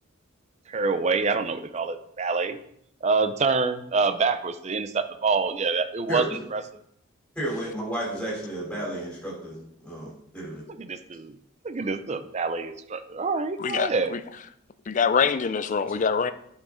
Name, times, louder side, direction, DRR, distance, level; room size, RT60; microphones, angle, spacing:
voice 1, 0.7-2.6 3.0-6.2 6.5-6.6 10.8-11.3 11.6-14.1, right 4 dB, 30° right, 10 dB, 0.5 m, -26 dB
voice 2, 6.1-6.4 7.4-10.6, right 1 dB, 5° left, -5 dB, 3.5 m, -32 dB
voice 3, 13.6-14.2 14.9-16.3, left 6 dB, 35° left, 12 dB, 0.4 m, -24 dB
10.0 x 6.1 x 3.8 m, 0.72 s
head